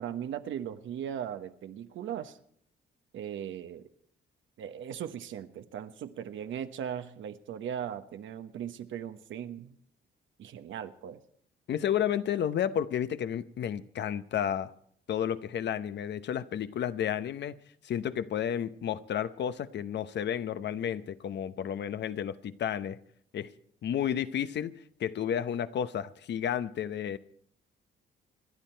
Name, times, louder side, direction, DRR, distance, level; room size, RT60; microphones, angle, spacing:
voice 1, 0.0-2.4 3.1-3.9 4.6-9.8 10.4-11.2, right 9 dB, 75° right, 1.2 m, -38 dB
voice 2, 11.7-14.7 15.1-17.5 17.8-23.0 23.3-23.5 23.8-27.2, left 9 dB, 60° left, 0.8 m, -32 dB
27.0 x 11.0 x 4.5 m
cardioid pair, 90°, 20 cm